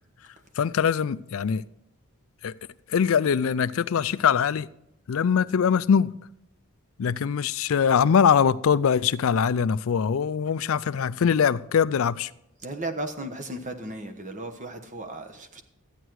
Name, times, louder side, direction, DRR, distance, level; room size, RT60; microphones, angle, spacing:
voice 1, 0.5-1.6 2.4-2.5 2.9-4.7 5.1-6.1 7.0-12.3, left 7 dB, 65° left, 0.4 m, -22 dB
voice 2, 12.6-15.6, right 1 dB, 35° right, 1.2 m, -35 dB
13.0 x 9.0 x 4.7 m
head